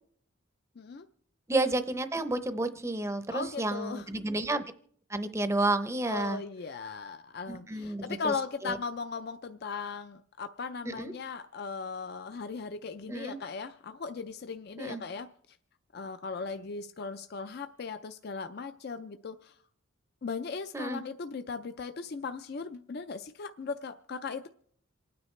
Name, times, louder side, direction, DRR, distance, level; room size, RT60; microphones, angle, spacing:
voice 1, 0.8-1.1 3.3-4.1 6.1-15.3 15.9-19.5 20.2-24.5, left 5 dB, 50° left, 9 dB, 0.4 m, -38 dB
voice 2, 1.5-4.6 5.1-6.4 7.5-8.3 8.6-8.8 10.9-11.1 13.1-13.4 14.8-15.0 20.7-21.0, right 2 dB, 15° right, 10 dB, 0.6 m, -31 dB
27.5 x 9.5 x 3.2 m, 0.64 s
head